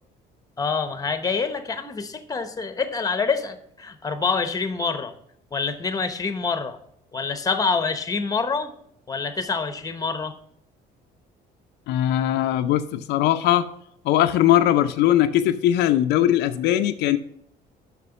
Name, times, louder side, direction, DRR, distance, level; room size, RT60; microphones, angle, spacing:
voice 1, 0.6-5.1 5.5-6.8 7.1-8.7 9.1-10.3, left 4 dB, 20° left, 9 dB, 0.9 m, -26 dB
voice 2, 11.9-13.7 14.0-17.2, left 12 dB, 85° left, 8 dB, 0.6 m, -20 dB
6.8 x 6.0 x 5.9 m, 0.70 s
cardioid pair, 110°, 17 cm